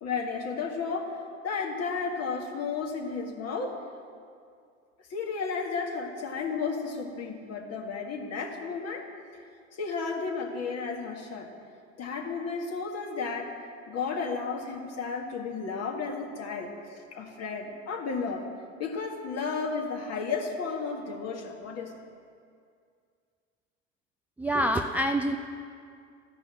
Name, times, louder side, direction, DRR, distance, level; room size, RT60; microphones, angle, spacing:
voice 1, 0.0-1.2 1.4-3.8 5.1-9.1 9.8-11.5 12.0-13.5 13.9-18.5 18.8-21.9, left 5 dB, 40° left, 1 dB, 1.9 m, -33 dB
voice 2, 24.4-25.4, equal, 5° right, 4 dB, 0.4 m, -26 dB
13.0 x 5.4 x 7.6 m, 2.3 s
hypercardioid pair, 70°, 37 cm